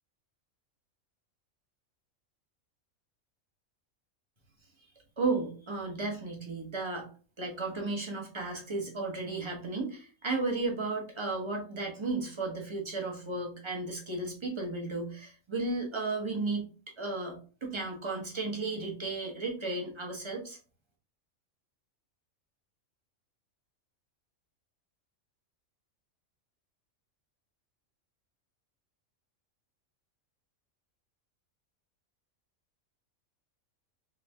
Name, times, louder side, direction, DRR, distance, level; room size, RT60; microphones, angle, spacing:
voice 1, 5.2-7.1 7.4-16.7 17.0-20.6, right 3 dB, 25° right, 0 dB, 0.9 m, -34 dB
3.5 x 3.2 x 3.3 m, 0.38 s
omnidirectional pair, 1.4 m